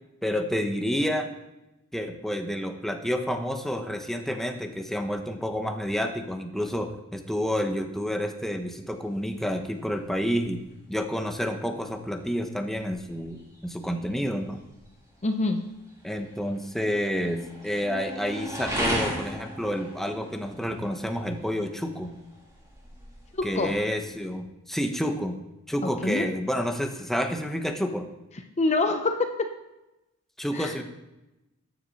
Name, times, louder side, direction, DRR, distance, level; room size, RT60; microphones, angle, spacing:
voice 1, 0.2-1.3 1.9-10.6 10.9-14.6 16.0-22.1 23.4-25.4 25.7-28.1 30.4-30.8, equal, ahead, 4 dB, 1.0 m, -29 dB
sound 1, 8.8-24.4, equal, 15° right, 3.6 m, -39 dB
voice 2, 15.2-15.7 23.3-23.7 26.0-26.3 28.6-29.5 30.5-30.7, left 3 dB, 30° left, 6 dB, 0.7 m, -25 dB
14.0 x 9.7 x 4.2 m, 0.96 s
head